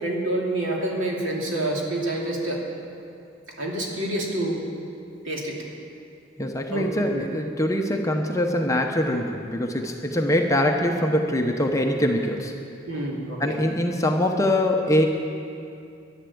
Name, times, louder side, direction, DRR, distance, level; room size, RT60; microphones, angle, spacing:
voice 1, 0.0-2.6 3.6-4.6 5.2-5.6 6.7-7.2 12.9-13.6, right 1 dB, 85° right, -2 dB, 2.7 m, -27 dB
voice 2, 6.4-12.5 13.4-15.1, left 1 dB, 15° left, 2 dB, 0.8 m, -23 dB
11.0 x 11.0 x 8.5 m, 2.6 s
head